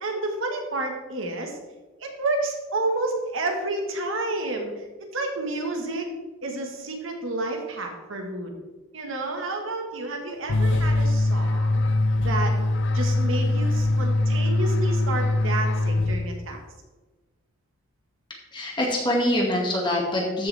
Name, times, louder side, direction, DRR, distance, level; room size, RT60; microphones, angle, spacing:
voice 1, 0.0-1.6 2.0-4.8 5.1-6.1 6.4-8.5 8.9-11.8 12.2-12.5 12.9-16.6, right 2 dB, 65° right, 2 dB, 1.6 m, -30 dB
sound 1, 10.5-16.6, left 2 dB, 60° left, 0.6 m, -22 dB
voice 2, 18.5-20.5, left 1 dB, 20° left, -2 dB, 2.1 m, -24 dB
14.0 x 7.1 x 3.5 m, 1.2 s
head